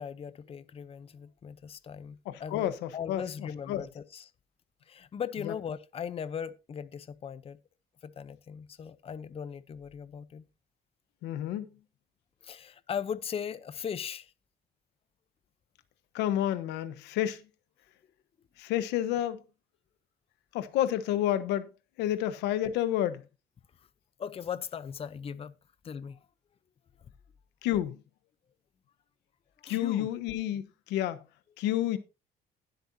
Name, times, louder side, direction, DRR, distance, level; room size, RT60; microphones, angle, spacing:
voice 1, 0.0-2.7 2.9-4.3 4.9-7.6 8.0-10.5 12.4-14.3 24.2-25.5 25.8-26.2 29.7-30.1, left 7 dB, 35° left, 0.7 m, -38 dB
voice 2, 2.3-3.2 3.7-3.8 5.4-5.5 11.2-11.7 16.1-17.4 18.6-19.4 20.5-21.7 22.0-23.2 27.6-28.0 29.6-31.2 31.6-32.0, left 12 dB, 90° left, 1.1 m, -30 dB
19.5 x 7.9 x 2.8 m
cardioid pair, 110°, 17 cm